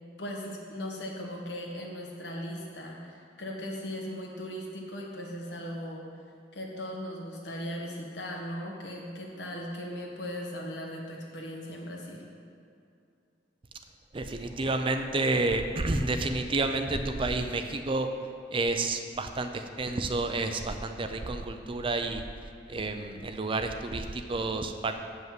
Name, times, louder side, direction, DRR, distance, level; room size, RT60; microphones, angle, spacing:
voice 1, 0.2-6.0 6.5-12.2, equal, 70° left, -1 dB, 1.6 m, -38 dB
voice 2, 14.1-18.1 18.5-22.2 22.7-24.9, right 2 dB, 30° right, 7 dB, 0.5 m, -30 dB
7.8 x 5.6 x 7.5 m, 2.5 s
head